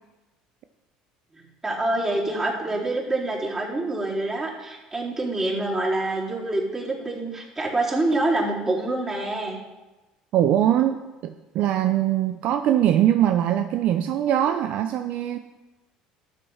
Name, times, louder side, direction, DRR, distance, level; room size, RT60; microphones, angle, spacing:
voice 1, 1.3-9.6, right 2 dB, 20° right, -4 dB, 4.0 m, -26 dB
voice 2, 10.3-15.4, right 11 dB, 60° right, 8 dB, 0.6 m, -22 dB
12.5 x 7.2 x 5.6 m, 1.1 s
supercardioid pair, 90°, 3 cm